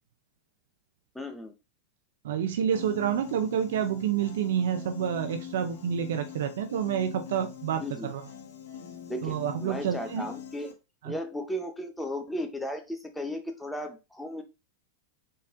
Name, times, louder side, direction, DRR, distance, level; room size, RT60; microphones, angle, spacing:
voice 1, 1.1-1.5 7.8-8.1 9.1-10.7 11.0-14.4, equal, 5° left, 4 dB, 0.7 m, -35 dB
voice 2, 2.2-8.2 9.2-10.3 11.0-11.2, right 9 dB, 80° right, 7 dB, 0.5 m, -28 dB
Piano, 2.7-10.7, left 10 dB, 80° left, 1.0 m, -43 dB
4.1 x 3.8 x 2.5 m, 0.27 s
supercardioid pair, 145°, 0 cm